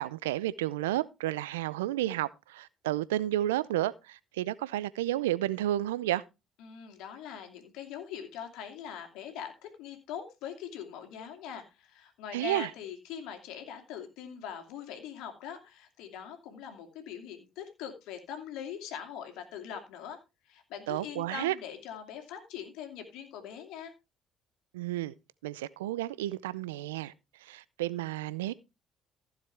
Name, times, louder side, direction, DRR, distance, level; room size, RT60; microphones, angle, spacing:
voice 1, 0.0-6.2 12.3-12.7 20.9-21.5 24.7-25.1 25.4-27.1 27.4-28.5, right 14 dB, 85° right, 0.5 m, -31 dB
voice 2, 6.6-20.2 20.4-23.9, left 8 dB, 70° left, 2.6 m, -42 dB
15.0 x 7.3 x 3.4 m
hypercardioid pair, 55°, 0 cm